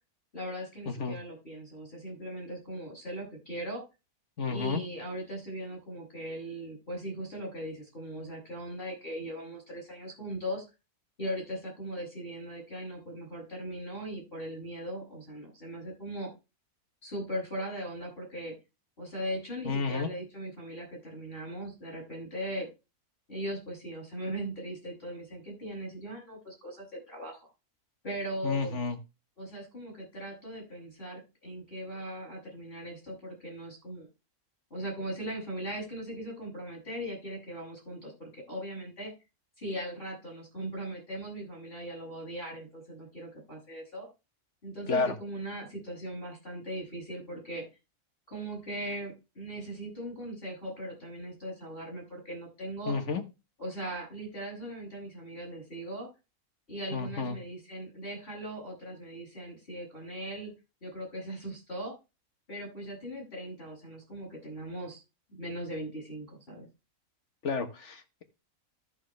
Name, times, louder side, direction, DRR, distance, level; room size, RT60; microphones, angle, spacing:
voice 1, 0.3-3.8 4.5-10.6 11.2-16.3 17.0-18.5 19.0-22.7 23.3-27.4 28.0-28.8 29.4-34.1 34.7-39.1 39.6-44.1 44.6-47.6 48.3-52.9 53.6-56.1 56.7-60.5 60.8-61.9 62.5-65.0 65.3-66.7, equal, 35° left, -1 dB, 7.8 m, -39 dB
voice 2, 0.9-1.2 4.4-4.8 19.6-20.1 28.4-29.0 44.9-45.1 52.9-53.2 56.9-57.4 67.4-68.2, left 4 dB, 50° left, 7 dB, 1.6 m, -31 dB
14.0 x 6.3 x 3.3 m, 0.27 s
omnidirectional pair, 1.6 m